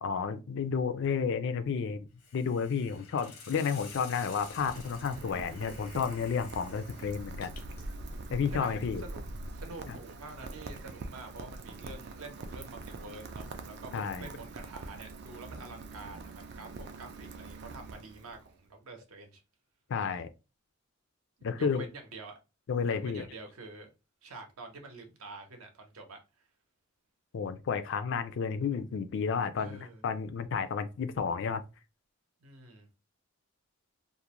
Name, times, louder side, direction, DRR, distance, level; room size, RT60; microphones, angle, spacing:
voice 1, 0.0-2.0 2.3-7.5 8.3-9.0 9.9-10.0 13.9-14.3 19.9-20.3 21.4-21.8 22.7-23.2 27.3-31.6, left 6 dB, 55° left, 0.3 m, -31 dB
Hiss, 2.2-8.0, left 4 dB, 90° left, 0.9 m, -51 dB
Rain, 3.9-18.5, right 3 dB, 50° right, 0.3 m, -44 dB
voice 2, 8.5-9.2 9.5-19.4 21.6-22.4 22.9-23.9 24.2-26.5 29.6-30.0 32.4-32.9, right 3 dB, 70° right, 0.7 m, -47 dB
2.4 x 2.0 x 2.9 m
head